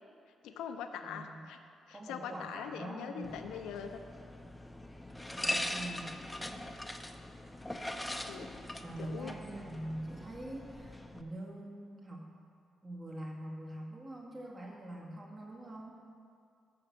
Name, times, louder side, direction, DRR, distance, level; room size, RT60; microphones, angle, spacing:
voice 1, 0.4-1.6 1.9-4.0 8.3-8.5 9.0-9.3, left 7 dB, 80° left, 7 dB, 0.6 m, -42 dB
voice 2, 1.0-1.5 1.9-3.4 5.3-6.2 8.5-12.3 12.8-16.0, right 1 dB, 35° right, -2 dB, 2.1 m, -44 dB
sound 1, 3.2-11.2, left 1 dB, 10° left, 0.7 m, -41 dB
7.0 x 6.4 x 7.0 m, 2.3 s
supercardioid pair, 50°, 0 cm